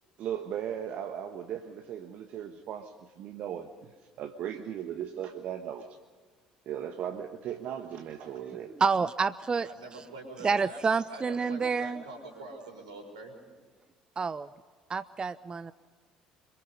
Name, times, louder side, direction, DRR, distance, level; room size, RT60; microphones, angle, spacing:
voice 1, 0.2-6.0 6.7-8.7, right 9 dB, 55° right, 6 dB, 1.3 m, -37 dB
voice 2, 8.8-9.7 10.4-12.0 14.2-14.5 14.9-15.7, right 5 dB, 30° right, 16 dB, 0.6 m, -28 dB
voice 3, 9.7-10.8 11.1-13.3, right 2 dB, 80° right, 3 dB, 5.3 m, -45 dB
26.0 x 23.5 x 5.4 m, 1.5 s
figure-of-eight pair, 55°, 3 cm